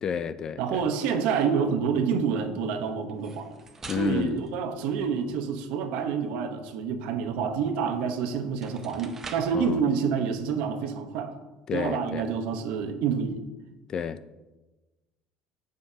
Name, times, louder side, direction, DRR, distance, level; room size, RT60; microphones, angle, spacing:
voice 1, 0.0-0.8 3.9-4.4 9.5-9.8 11.7-12.3 13.9-14.2, left 7 dB, 30° left, 0.3 m, -30 dB
voice 2, 0.6-3.6 3.9-11.4 11.7-13.4, right 6 dB, 75° right, 0.9 m, -28 dB
sound 1, 3.1-5.5 7.9-8.0 8.5-9.7, right 3 dB, 20° right, 0.6 m, -45 dB
14.5 x 5.2 x 2.8 m
cardioid pair, 155°, 2 cm